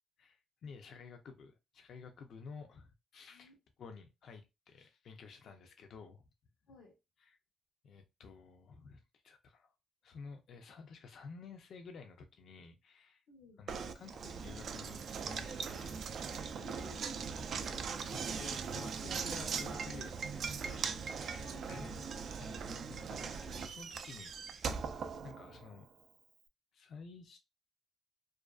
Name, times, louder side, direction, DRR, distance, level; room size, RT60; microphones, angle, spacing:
voice 1, 0.2-3.5 3.8-6.2 7.2-7.4 7.8-9.7 10.0-13.2 13.6-16.1 16.6-16.8 18.1-20.9 21.2-22.1 22.4-24.8 25.2-25.9 26.7-27.4, left 5 dB, 65° left, 0.4 m, -52 dB
voice 2, 13.3-13.6 16.6-17.8 18.3-18.6 21.4-22.1, left 3 dB, 90° left, 0.8 m, -57 dB
Knock, 13.7-25.8, right 6 dB, 60° right, 0.3 m, -40 dB
2.4 x 2.3 x 2.3 m
cardioid pair, 90°, 0 cm